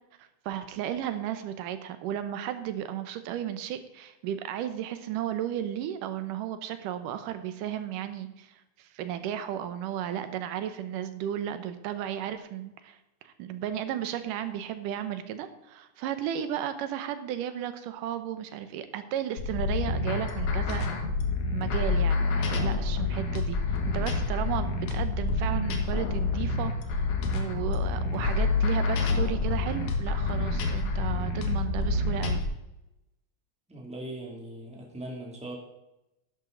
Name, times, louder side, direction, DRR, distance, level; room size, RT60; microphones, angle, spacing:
voice 1, 0.2-13.0 13.2-20.9 21.5-23.6 23.9-27.1 27.3-32.4, right 10 dB, 90° right, 10 dB, 2.5 m, -34 dB
sound 1, 19.4-32.4, left 3 dB, 70° left, 2.6 m, -28 dB
voice 2, 33.7-35.6, right 1 dB, ahead, -1 dB, 2.1 m, -40 dB
11.5 x 10.5 x 3.9 m, 0.93 s
omnidirectional pair, 3.6 m